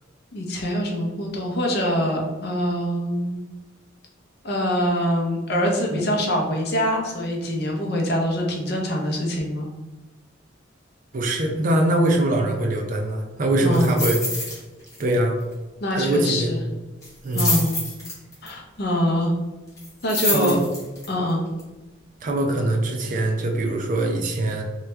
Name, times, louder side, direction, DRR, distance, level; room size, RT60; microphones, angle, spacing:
voice 1, 0.3-3.4 4.4-9.7 13.6-14.0 15.8-16.6 17.3-17.8 18.4-19.3 20.0-20.6 21.1-21.5, equal, 55° left, 0 dB, 0.6 m, -24 dB
voice 2, 11.1-14.6 15.0-15.4 15.9-16.5 17.2-17.6 20.3-20.6 22.2-24.6, right 1 dB, 40° right, 2 dB, 0.4 m, -22 dB
sound 1, 13.7-14.6 14.9-15.1 15.4-15.5 17.0-18.5 19.8-21.1 21.6-21.7, left 2 dB, 15° left, 1.0 m, -27 dB
2.9 x 2.3 x 3.2 m, 1.1 s
head